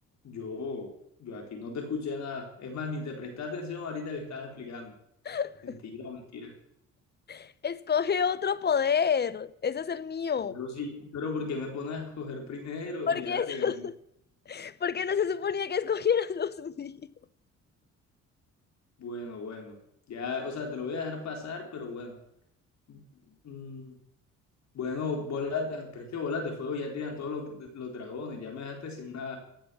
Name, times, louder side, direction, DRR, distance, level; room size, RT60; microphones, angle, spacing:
voice 1, 0.2-0.9 1.2-4.9 5.6-6.5 10.5-13.8 19.0-19.8 20.1-22.2 22.9-23.0 23.4-24.0 24.7-29.4, left 4 dB, 65° left, 4.3 m, -36 dB
voice 2, 5.2-5.8 7.3-10.6 13.1-13.9 14.5-17.0, left 7 dB, 35° left, 0.7 m, -29 dB
15.5 x 9.0 x 7.1 m
cardioid pair, 90°, 30 cm